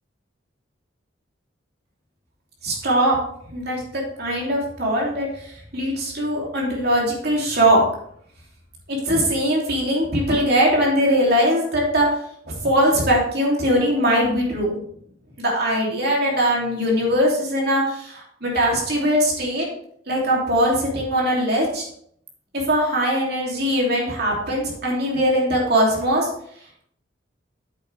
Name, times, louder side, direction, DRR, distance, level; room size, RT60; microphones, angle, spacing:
voice 1, 2.6-3.2 3.5-7.8 8.9-12.2 12.5-14.8 15.4-19.7 20.1-21.9 22.7-26.3, equal, 50° right, -2 dB, 2.9 m, -21 dB
8.8 x 7.5 x 3.4 m, 0.67 s
head